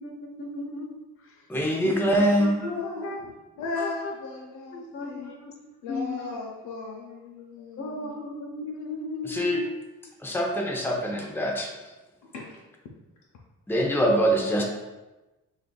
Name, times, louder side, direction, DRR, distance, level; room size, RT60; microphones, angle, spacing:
voice 1, 0.0-1.5 1.7-2.0 3.0-3.2 3.8-4.1 4.7-5.5 5.9-6.4 7.8-9.7, left 3 dB, 50° left, 2 dB, 0.8 m, -36 dB
voice 2, 1.5-2.7 9.3-9.6 10.2-11.7 13.7-14.6, equal, 5° left, 0 dB, 0.7 m, -24 dB
voice 3, 2.1-3.3 3.6-5.3 5.8-8.1 12.2-12.6, left 3 dB, 90° left, -3 dB, 0.7 m, -36 dB
6.4 x 2.6 x 2.3 m, 1.1 s
cardioid pair, 90°, 30 cm